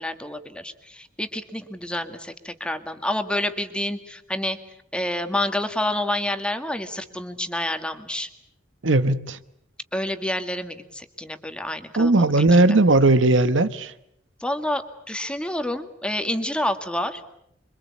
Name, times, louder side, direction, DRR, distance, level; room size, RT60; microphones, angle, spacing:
voice 1, 0.0-4.6 4.9-8.3 9.9-12.3 12.7-12.8 14.4-17.2, left 1 dB, 5° left, 1.9 m, -28 dB
voice 2, 8.8-9.4 12.0-13.9, right 2 dB, 75° right, 1.1 m, -18 dB
27.0 x 24.0 x 8.5 m
head